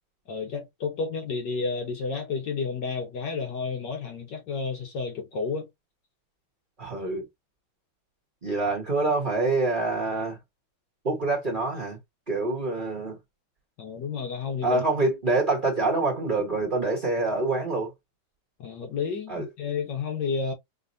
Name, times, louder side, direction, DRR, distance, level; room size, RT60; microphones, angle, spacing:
voice 1, 0.3-5.7 13.8-14.8 18.6-20.5, left 5 dB, 60° left, 1.4 m, -31 dB
voice 2, 6.8-7.2 8.4-10.4 11.0-12.0 12.3-13.2 14.6-17.9 19.3-19.5, right 3 dB, 30° right, 1.1 m, -26 dB
5.2 x 2.8 x 2.6 m
omnidirectional pair, 2.3 m